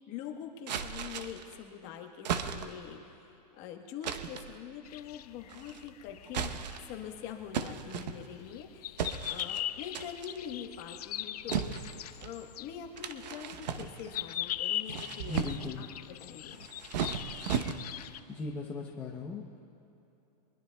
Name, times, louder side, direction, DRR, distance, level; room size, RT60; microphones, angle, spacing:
voice 1, 0.1-3.0 3.5-6.5 6.9-11.9 12.2-15.4 15.8-15.9 16.2-16.7, left 8 dB, 30° left, 3 dB, 1.2 m, -44 dB
sound 1, 0.7-1.5 2.2-2.9 4.0-4.5 5.5-5.9 6.3-7.0 7.5-8.5 9.0-9.6 9.9-10.4 11.5-12.4 13.0-14.2 14.7-15.8 16.5-18.1, right 7 dB, 85° right, 1.0 m, -36 dB
sound 2, 4.8-18.2, left 12 dB, 65° left, 0.6 m, -40 dB
voice 2, 15.2-15.9 18.3-19.6, left 3 dB, 10° left, -3 dB, 0.7 m, -38 dB
24.0 x 21.0 x 2.3 m, 2.9 s
supercardioid pair, 170°, 21 cm